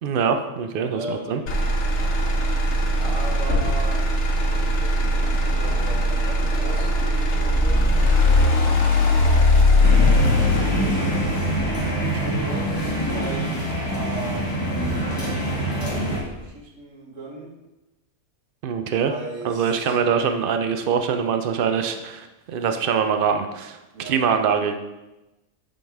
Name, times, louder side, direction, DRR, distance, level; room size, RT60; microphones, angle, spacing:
voice 1, 0.0-1.4 18.6-19.1 19.4-22.2 22.5-23.8 24.1-24.7, right 6 dB, 55° right, 7 dB, 0.7 m, -23 dB
voice 2, 0.9-1.6 3.0-4.0 4.9-7.9 10.2-10.9 12.1-14.5 15.2-16.1 16.4-17.5 18.9-19.9 21.6-22.0 23.9-24.2, right 2 dB, 80° right, -1 dB, 1.7 m, -37 dB
Motor vehicle (road), 1.5-15.5 15.9-16.4, left 1 dB, 65° left, 1.2 m, -21 dB
sound 1, 9.8-16.2, right 1 dB, 15° left, 1.4 m, -25 dB
9.3 x 4.2 x 3.4 m, 1.0 s
omnidirectional pair, 1.3 m